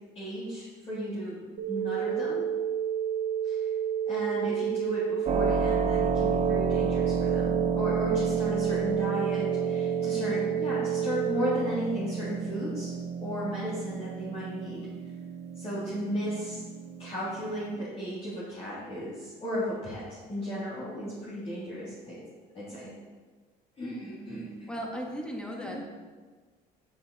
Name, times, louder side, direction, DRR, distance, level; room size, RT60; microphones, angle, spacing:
voice 1, 0.1-1.4 1.7-2.5 3.4-3.7 4.1-12.9 13.2-14.9 15.5-16.6 17.0-22.2 22.5-22.9 23.8-24.7 25.6-25.7, equal, 35° left, -10 dB, 3.3 m, -35 dB
sound 1, 1.6-11.6, right 9 dB, 75° right, 1.2 m, -30 dB
Keyboard (musical), 5.3-17.8, right 5 dB, 40° right, 0.8 m, -32 dB
voice 2, 24.7-25.9, equal, 5° left, -1 dB, 1.8 m, -36 dB
10.0 x 7.8 x 4.3 m, 1.4 s
cardioid pair, 110°, 17 cm